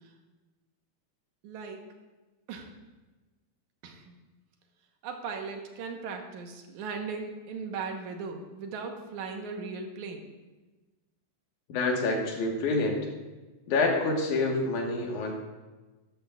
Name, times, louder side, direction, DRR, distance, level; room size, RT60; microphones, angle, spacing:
voice 1, 1.4-1.9 2.5-2.7 3.8-4.2 5.0-10.3, right 5 dB, 80° right, 3 dB, 2.5 m, -38 dB
voice 2, 11.7-13.0 13.7-15.3, left 3 dB, 85° left, 0 dB, 2.9 m, -27 dB
12.5 x 12.0 x 2.4 m, 1.2 s
omnidirectional pair, 3.4 m